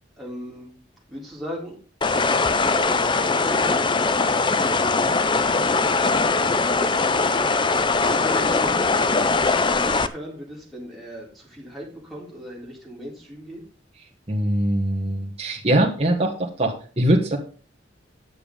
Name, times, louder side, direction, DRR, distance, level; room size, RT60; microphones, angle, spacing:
voice 1, 0.2-0.7 1.1-1.8 2.6-4.4 5.3-7.6 8.0-8.9 9.6-13.6, equal, ahead, -5 dB, 3.9 m, -37 dB
sound 1, 2.0-10.1, left 3 dB, 25° left, 0.5 m, -21 dB
voice 2, 14.3-17.4, right 1 dB, 30° right, -2 dB, 1.6 m, -22 dB
9.6 x 7.0 x 5.3 m, 0.39 s
head